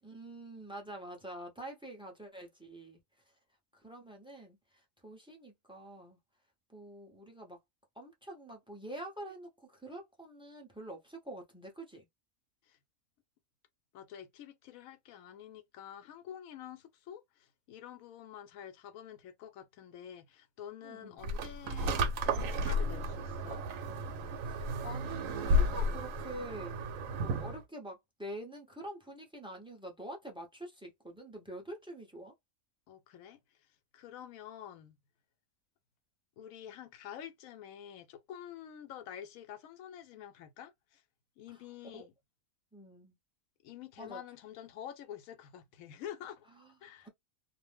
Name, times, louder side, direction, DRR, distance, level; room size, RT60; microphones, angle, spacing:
voice 1, 0.0-3.0 3.7-6.2 6.7-7.6 7.9-12.1 20.8-21.3 24.4-26.8 27.2-32.3 41.5-41.7 41.9-42.0 42.7-43.1 44.0-44.2 46.6-46.7 47.0-47.1, right 1 dB, 5° right, 0.5 m, -46 dB
voice 2, 13.9-23.6 32.9-33.4 33.9-35.0 36.4-41.0 41.4-42.1 43.6-46.5 46.8-47.1, left 10 dB, 85° left, 1.0 m, -48 dB
sound 1, 21.2-27.6, equal, 85° right, 1.0 m, -33 dB
2.5 x 2.0 x 3.2 m
omnidirectional pair, 1.4 m